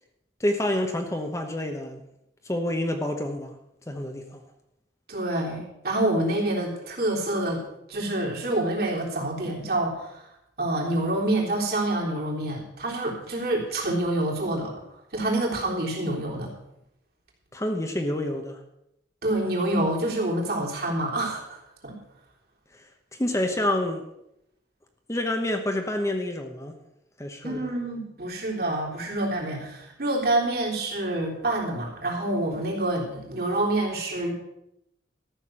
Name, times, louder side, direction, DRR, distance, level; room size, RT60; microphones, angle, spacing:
voice 1, 0.4-2.0 2.4-3.5 3.9-4.4 17.5-18.6 22.7-24.0 25.1-26.8 27.2-27.7, left 1 dB, 15° left, 4 dB, 1.0 m, -28 dB
voice 2, 5.1-7.6 7.9-10.3 10.6-14.7 15.1-16.5 19.2-22.0 27.4-34.3, right 1 dB, 55° right, -2 dB, 3.5 m, -27 dB
13.5 x 6.4 x 7.5 m, 0.83 s
head